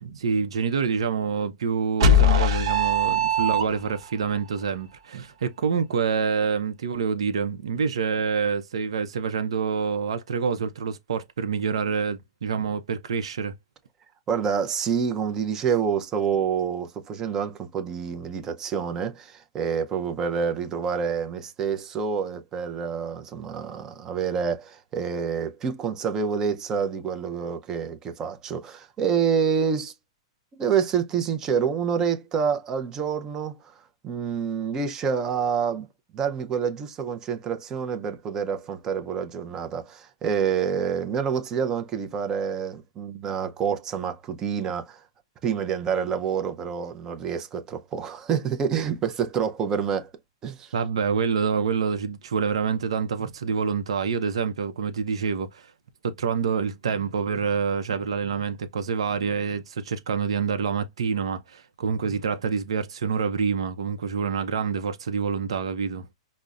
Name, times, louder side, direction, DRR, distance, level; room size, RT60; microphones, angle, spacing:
voice 1, 0.0-13.5 50.7-55.7 56.0-66.1, right 6 dB, 90° right, 0.5 m, -27 dB
sound 1, 2.0-4.1, left 2 dB, 65° right, 0.9 m, -20 dB
voice 2, 14.3-29.9 30.5-33.6 34.0-35.9 36.1-45.0 45.4-50.1 50.4-50.7, right 7 dB, 20° right, 0.5 m, -27 dB
5.3 x 2.0 x 2.3 m
hypercardioid pair, 160°, 3 cm